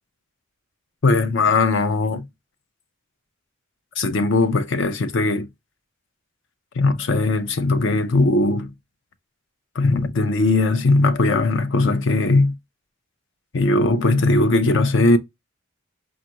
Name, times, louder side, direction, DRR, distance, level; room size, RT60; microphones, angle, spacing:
voice 1, 1.0-2.3 4.0-5.5 6.8-8.7 9.8-12.6 13.5-15.2, left 2 dB, 60° left, 0.6 m, -19 dB
5.2 x 2.4 x 2.8 m
head